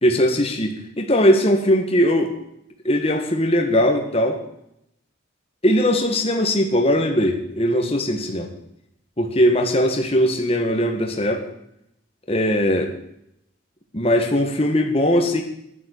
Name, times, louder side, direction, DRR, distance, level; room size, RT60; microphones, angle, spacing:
voice 1, 0.0-2.3 2.8-4.4 5.6-8.5 9.2-11.4 12.3-12.9 13.9-15.4, equal, 30° left, 3 dB, 1.7 m, -19 dB
11.5 x 11.0 x 6.6 m, 0.77 s
head